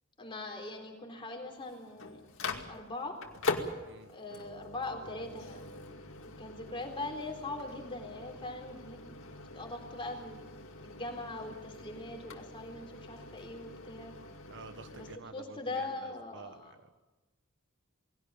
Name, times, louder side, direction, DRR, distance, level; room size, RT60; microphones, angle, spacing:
voice 1, 0.2-2.2 2.7-3.2 4.1-5.7 6.2-9.1 9.5-10.4 10.8-14.1 14.9-15.1 15.3-16.7, left 2 dB, 25° left, 2 dB, 4.1 m, -41 dB
Microwave oven, 1.5-15.2, left 3 dB, 70° left, 2.3 m, -43 dB
voice 2, 14.5-17.0, right 3 dB, 60° right, 9 dB, 1.5 m, -50 dB
20.5 x 17.0 x 8.8 m, 1.1 s
head